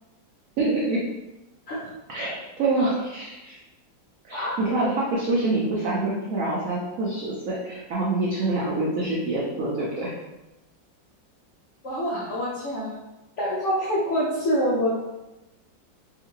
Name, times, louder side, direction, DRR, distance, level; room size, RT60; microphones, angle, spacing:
voice 1, 0.6-1.0 2.1-3.6 4.2-10.1, right 2 dB, 80° right, -5 dB, 0.7 m, -26 dB
voice 2, 11.8-12.9 13.4-14.9, equal, 80° left, -6 dB, 0.6 m, -26 dB
3.6 x 2.4 x 2.9 m, 1.0 s
omnidirectional pair, 2.1 m